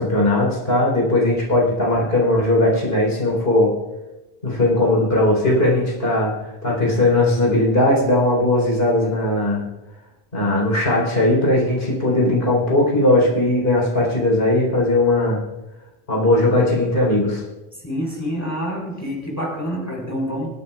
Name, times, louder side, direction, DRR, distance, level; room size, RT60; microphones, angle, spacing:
voice 1, 0.0-3.7 4.4-6.3 6.6-9.6 10.3-15.4 16.1-17.4, left 1 dB, 65° left, -3 dB, 4.2 m, -18 dB
voice 2, 17.7-20.5, equal, 15° left, -2 dB, 4.5 m, -27 dB
27.5 x 9.6 x 2.4 m, 1.0 s
omnidirectional pair, 1.1 m